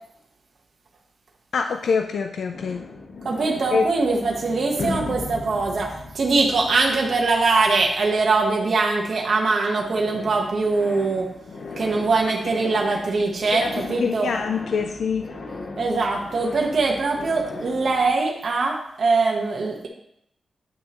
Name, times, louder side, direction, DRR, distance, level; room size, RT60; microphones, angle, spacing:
voice 1, 1.5-2.8 3.7-3.9 13.5-13.7 14.0-15.3, left 5 dB, 80° left, 5 dB, 0.5 m, -24 dB
sound 1, 2.5-9.5 9.8-18.1, left 3 dB, 55° left, 0.9 m, -37 dB
voice 2, 3.2-11.3 11.8-14.3 15.8-19.9, right 3 dB, 55° right, -1 dB, 1.1 m, -22 dB
9.2 x 6.2 x 3.0 m, 0.76 s
wide cardioid pair, 140°, 0 cm